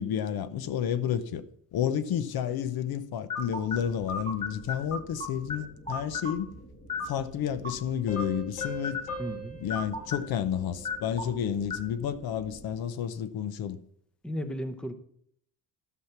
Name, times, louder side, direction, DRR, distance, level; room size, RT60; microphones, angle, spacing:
voice 1, 0.0-1.4 1.7-6.6 7.0-9.0 9.6-13.8, left 9 dB, 55° left, 0.7 m, -31 dB
sound 1, 3.3-12.8, left 4 dB, 20° left, 2.0 m, -38 dB
sound 2, 8.1-11.4, right 1 dB, 75° left, 3.8 m, -42 dB
voice 2, 9.2-9.6 14.2-14.9, equal, ahead, 0.6 m, -34 dB
13.0 x 5.9 x 5.8 m
cardioid pair, 160°, 44 cm